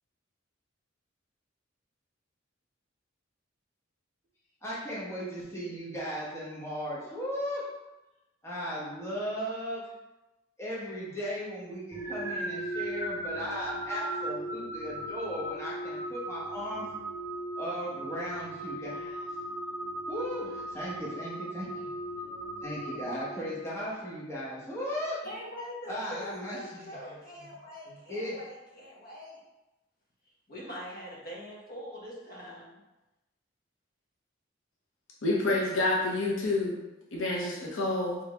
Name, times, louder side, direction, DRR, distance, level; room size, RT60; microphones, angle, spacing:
voice 1, 4.6-7.6 8.4-9.8 10.6-16.9 17.6-19.2 20.1-21.9 22.3-25.2 25.9-26.8 27.9-28.4, equal, 15° left, -7 dB, 1.0 m, -37 dB
sound 1, 11.9-23.9, right 1 dB, 15° right, 0.6 m, -37 dB
voice 2, 25.2-29.4 30.5-32.8, equal, 50° left, -5 dB, 1.3 m, -43 dB
voice 3, 35.2-36.8 37.1-38.2, left 2 dB, 85° left, -2 dB, 0.8 m, -28 dB
3.8 x 3.4 x 3.4 m, 1.0 s
head